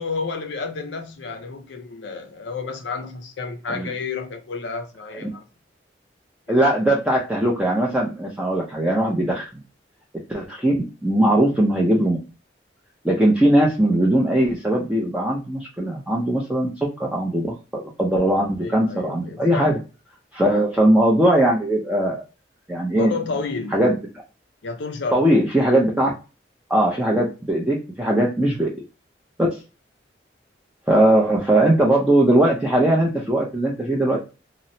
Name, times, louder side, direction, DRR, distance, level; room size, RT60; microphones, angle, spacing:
voice 1, 0.0-5.4 6.5-6.7 11.3-11.6 18.6-19.8 20.5-20.7 22.9-23.8 24.6-25.3, left 4 dB, 85° left, 0.5 m, -31 dB
voice 2, 6.5-9.4 10.3-12.2 13.0-16.7 17.0-19.8 20.3-22.2 22.7-23.1 23.7-24.0 25.1-26.1 26.7-28.7 30.9-34.2, right 1 dB, 5° right, 0.5 m, -19 dB
2.9 x 2.0 x 2.6 m
head